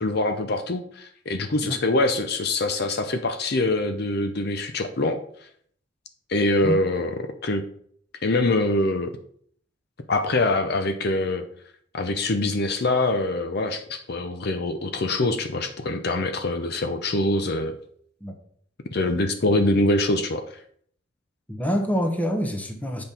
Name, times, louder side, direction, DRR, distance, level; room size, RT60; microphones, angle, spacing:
voice 1, 0.0-5.2 6.3-7.6 8.2-9.2 10.1-11.4 11.9-17.8 18.9-20.6, left 2 dB, 55° left, 7 dB, 0.6 m, -24 dB
voice 2, 21.5-23.0, equal, 10° left, 3 dB, 1.0 m, -26 dB
8.0 x 5.3 x 4.3 m, 0.62 s
head